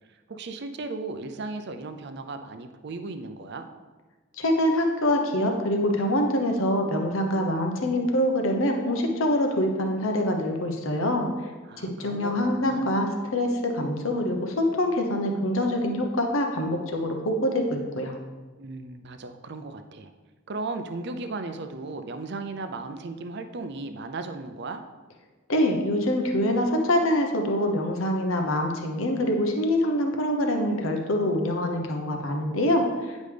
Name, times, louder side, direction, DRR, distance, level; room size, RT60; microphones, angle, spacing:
voice 1, 0.3-3.7 11.7-12.9 18.6-20.1 20.5-24.8, right 3 dB, 55° right, 8 dB, 0.5 m, -36 dB
voice 2, 4.4-11.3 11.8-18.1 25.5-33.2, left 1 dB, 80° left, 3 dB, 1.0 m, -25 dB
9.3 x 5.2 x 3.4 m, 1.3 s
head